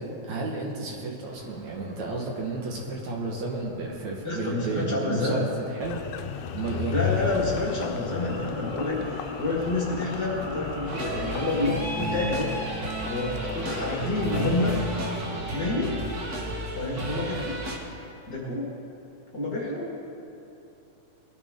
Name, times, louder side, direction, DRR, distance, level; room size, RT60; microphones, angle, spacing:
voice 1, 0.0-6.0 6.5-6.9, right 3 dB, 65° right, -1 dB, 2.6 m, -32 dB
sound 1, 1.2-11.5, right 1 dB, 10° right, 3.0 m, -45 dB
voice 2, 4.2-5.5 6.9-12.6 13.1-14.8 15.3-16.0 16.7-17.5 18.3-18.7 19.3-19.9, left 2 dB, 35° left, -5 dB, 2.3 m, -28 dB
Engine, 5.8-14.8, left 9 dB, 80° left, 1.9 m, -36 dB
sound 2, 10.9-17.8, right 1 dB, 45° right, 1.4 m, -33 dB
21.0 x 12.5 x 3.7 m, 2.9 s
omnidirectional pair, 3.7 m